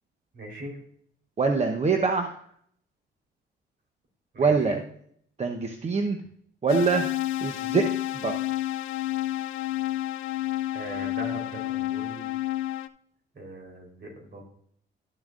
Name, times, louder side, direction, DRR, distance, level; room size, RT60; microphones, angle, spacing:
voice 1, 0.3-0.8 4.3-4.8 10.7-12.3 13.4-14.5, right 1 dB, 55° right, 1 dB, 3.8 m, -40 dB
voice 2, 1.4-2.4 4.4-4.8 5.4-6.2 6.6-7.1 7.4-7.9 8.1-8.3, right 4 dB, 35° right, 5 dB, 0.8 m, -24 dB
sound 1, 6.7-12.9, left 15 dB, 80° left, 0.5 m, -30 dB
12.0 x 7.1 x 2.5 m, 0.65 s
cardioid pair, 90°, 20 cm